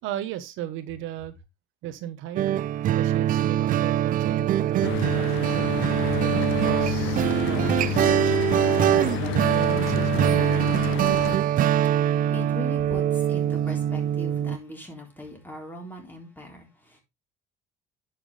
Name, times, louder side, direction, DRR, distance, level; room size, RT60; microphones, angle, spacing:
voice 1, 0.0-1.3 1.8-2.6 2.9-5.7 6.2-8.3 8.9-10.8, right 11 dB, 75° right, 1.1 m, -36 dB
sound 1, 2.4-14.6, right 11 dB, 40° right, 0.4 m, -23 dB
Mechanical fan, 4.8-11.4, left 17 dB, 75° left, 0.5 m, -30 dB
voice 2, 11.1-17.0, left 1 dB, 10° left, 3.8 m, -40 dB
10.5 x 6.1 x 3.3 m
cardioid pair, 130°, 20 cm